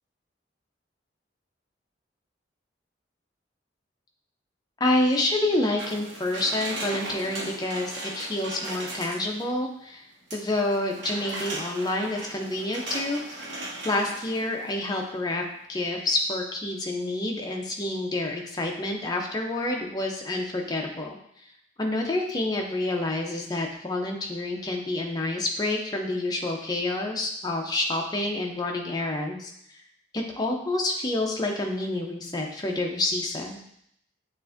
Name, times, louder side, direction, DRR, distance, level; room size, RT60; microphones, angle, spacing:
voice 1, 4.8-10.0 10.3-13.5 13.8-15.4 15.7-21.2 21.8-29.5 30.1-33.6, left 2 dB, 20° left, 1 dB, 0.5 m, -28 dB
sound 1, 5.8-9.4 10.3-14.7 15.1-15.2, right 2 dB, 80° right, 1.0 m, -37 dB
7.0 x 2.5 x 2.5 m, 0.73 s
head